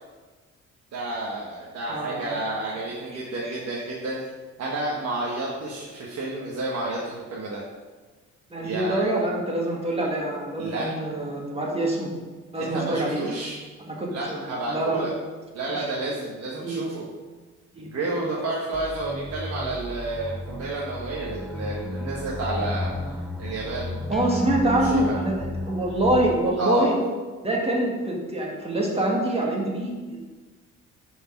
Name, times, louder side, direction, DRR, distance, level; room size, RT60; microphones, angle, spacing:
voice 1, 0.9-4.2 4.6-7.6 8.6-9.0 10.6-10.9 12.5-13.6 14.1-15.1 15.5-17.1 17.8-23.9 24.7-25.1 26.6-26.9, right 2 dB, 55° right, -4 dB, 1.3 m, -30 dB
voice 2, 1.9-2.3 8.5-12.1 12.5-13.2 13.9-15.0 15.7-15.9 16.6-16.8 17.7-17.9 18.1-18.3 24.1-27.0 27.4-29.9, right 1 dB, 20° right, -2 dB, 1.9 m, -25 dB
sound 1, 18.7-26.4, left 1 dB, ahead, 0.4 m, -33 dB
5.5 x 4.7 x 5.8 m, 1.3 s
cardioid pair, 90°, 30 cm